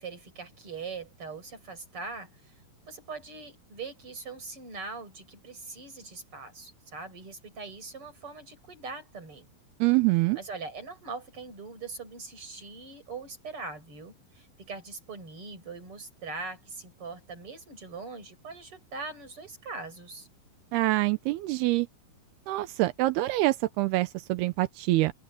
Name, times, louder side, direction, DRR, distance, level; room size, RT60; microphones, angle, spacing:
voice 1, 0.0-2.6 2.9-9.5 10.4-20.3, right 4 dB, 30° right, 7.3 m, -41 dB
voice 2, 9.8-10.4 20.7-21.9 22.5-25.1, right 19 dB, 85° right, 2.7 m, -25 dB
omnidirectional pair, 4.7 m